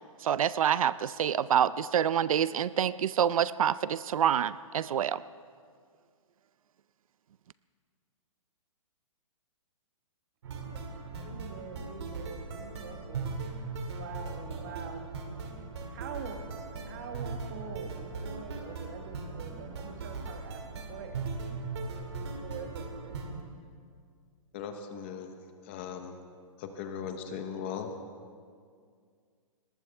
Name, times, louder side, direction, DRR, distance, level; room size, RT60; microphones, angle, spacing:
voice 1, 0.2-5.2, right 9 dB, 80° right, 17 dB, 0.5 m, -27 dB
sound 1, 10.4-23.4, right 4 dB, 50° right, 2.3 m, -39 dB
voice 2, 11.2-15.1 15.8-21.3 22.2-23.2, right 6 dB, 30° right, 6 dB, 1.3 m, -45 dB
voice 3, 24.5-26.2 26.6-27.9, left 7 dB, 20° left, 6 dB, 0.8 m, -39 dB
21.0 x 19.0 x 3.4 m, 2.1 s
hypercardioid pair, 175°, 18 cm